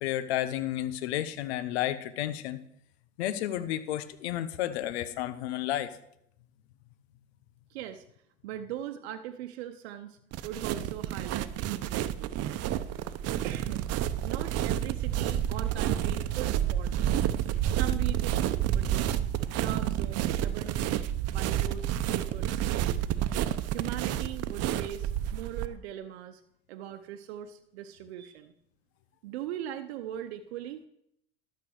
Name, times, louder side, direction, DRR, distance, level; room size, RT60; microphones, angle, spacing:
voice 1, 0.0-2.6 3.2-6.0, left 13 dB, 80° left, 13 dB, 0.8 m, -31 dB
voice 2, 7.7-8.0 8.4-12.4 13.4-13.9 14.2-17.2 17.7-21.0 21.3-22.9 23.7-26.4 26.7-28.5 29.2-30.8, right 11 dB, 80° right, 7 dB, 0.9 m, -40 dB
sound 1, 10.3-25.7, right 11 dB, 50° right, 0.8 m, -29 dB
12.5 x 6.7 x 6.4 m, 0.74 s
hypercardioid pair, 85°, 31 cm